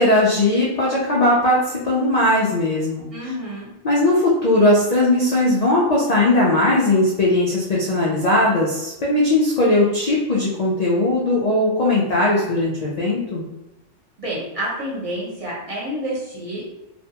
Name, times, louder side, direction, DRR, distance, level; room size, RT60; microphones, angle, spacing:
voice 1, 0.0-3.1 3.8-13.5, left 1 dB, 75° left, -5 dB, 0.3 m, -18 dB
voice 2, 3.1-3.7 14.2-16.7, right 1 dB, 35° right, -7 dB, 0.7 m, -29 dB
2.5 x 2.2 x 2.7 m, 0.93 s
omnidirectional pair, 1.3 m